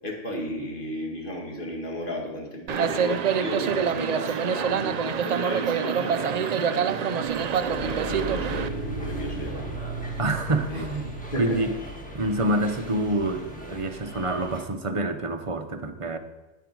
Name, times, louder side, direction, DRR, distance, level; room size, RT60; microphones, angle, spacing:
voice 1, 0.0-7.4 7.7-9.6 10.7-11.6, equal, 45° left, -1 dB, 2.2 m, -34 dB
sound 1, 2.7-8.7, right 7 dB, 75° right, 0.3 m, -26 dB
sound 2, 7.2-14.5, right 2 dB, 70° left, 2.3 m, -37 dB
sound 3, 7.3-14.7, equal, 5° left, 1.3 m, -43 dB
voice 2, 10.2-11.1 11.4-11.7 12.1-16.2, right 1 dB, 35° right, 7 dB, 0.6 m, -27 dB
9.4 x 9.0 x 4.5 m, 1.1 s
omnidirectional pair, 1.2 m